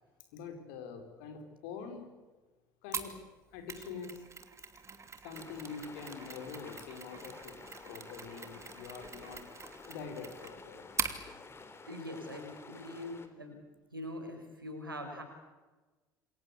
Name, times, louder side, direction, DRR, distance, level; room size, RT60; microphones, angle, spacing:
voice 1, 0.3-2.1 2.8-3.2 3.5-4.2 5.2-7.6 7.8-9.4 9.9-10.9, left 5 dB, 60° left, 6 dB, 4.9 m, -45 dB
Mechanisms, 2.9-11.2, right 5 dB, 25° right, 2.9 m, -43 dB
sound 1, 5.3-13.3, left 4 dB, 20° left, 3.5 m, -51 dB
voice 2, 11.9-13.6 13.9-15.2, left 1 dB, 85° right, 4 dB, 5.0 m, -43 dB
28.0 x 22.5 x 8.5 m, 1.2 s
figure-of-eight pair, 65°, 11 cm